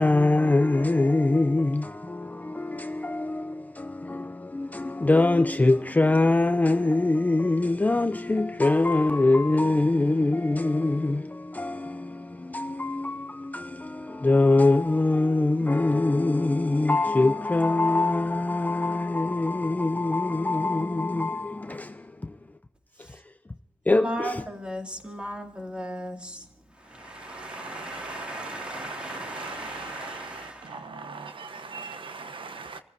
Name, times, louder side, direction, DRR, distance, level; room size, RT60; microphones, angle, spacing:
voice 1, 0.0-22.4 23.1-23.2 23.9-24.4, left 2 dB, 15° left, 0.5 m, -23 dB
voice 2, 23.9-26.4 26.9-30.8, equal, 10° right, 2.4 m, -36 dB
voice 3, 26.9-32.8, right 4 dB, 60° right, 1.0 m, -40 dB
29.5 x 15.0 x 2.7 m
wide cardioid pair, 130°, 10 cm